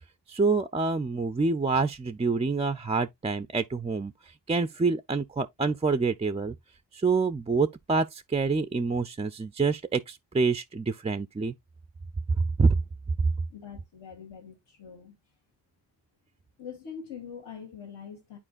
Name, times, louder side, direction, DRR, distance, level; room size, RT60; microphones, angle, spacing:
voice 1, 0.3-4.1 4.5-6.5 6.9-11.5 12.4-12.8, right 4 dB, 15° right, 0.3 m, -26 dB
voice 2, 13.5-15.2 16.6-18.4, left 7 dB, 70° left, 1.9 m, -43 dB
9.9 x 4.4 x 2.4 m
cardioid pair, 45°, 44 cm